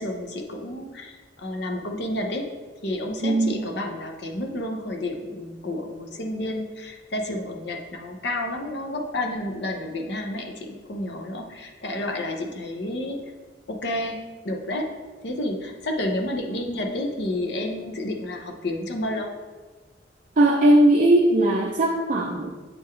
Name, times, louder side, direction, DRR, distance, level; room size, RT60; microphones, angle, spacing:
voice 1, 0.0-2.5 2.8-13.2 13.7-14.2 14.4-14.9 15.2-19.3, left 1 dB, 65° left, 3 dB, 0.8 m, -30 dB
voice 2, 3.2-3.6 20.4-22.5, right 1 dB, 45° right, 0 dB, 0.5 m, -18 dB
7.7 x 3.8 x 3.2 m, 1.3 s
head